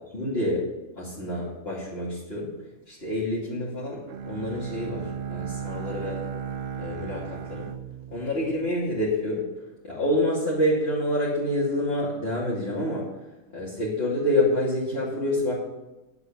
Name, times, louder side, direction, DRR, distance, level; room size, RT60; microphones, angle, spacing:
voice 1, 0.1-0.6 1.0-2.5 2.9-6.2 6.8-7.7 8.1-9.5 9.8-13.1 13.5-15.5, left 1 dB, 45° left, -8 dB, 2.9 m, -27 dB
Bowed string instrument, 4.1-9.1, right 7 dB, 55° right, 0.6 m, -36 dB
9.9 x 8.2 x 9.3 m, 1.0 s
omnidirectional pair, 1.5 m